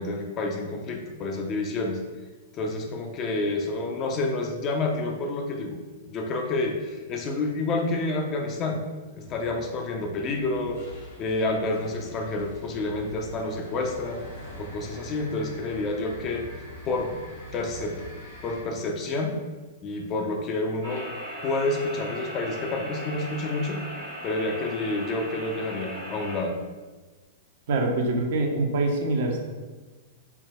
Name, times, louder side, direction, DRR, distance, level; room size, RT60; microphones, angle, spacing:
voice 1, 0.0-2.0 2.5-5.8 6.1-8.8 9.2-10.8 11.2-14.2 14.6-16.4 16.9-17.1 17.5-18.0 18.4-19.4 19.8-21.1 21.4-23.8 24.2-26.6, left 2 dB, 35° left, 2 dB, 0.4 m, -29 dB
sound 1, 9.2-18.6, equal, 60° left, 1.1 m, -44 dB
sound 2, 20.8-26.4, equal, 90° right, 1.1 m, -38 dB
voice 2, 27.7-29.4, right 2 dB, 60° right, 2 dB, 0.4 m, -24 dB
3.3 x 2.0 x 2.3 m, 1.3 s
figure-of-eight pair, 105°, 0 cm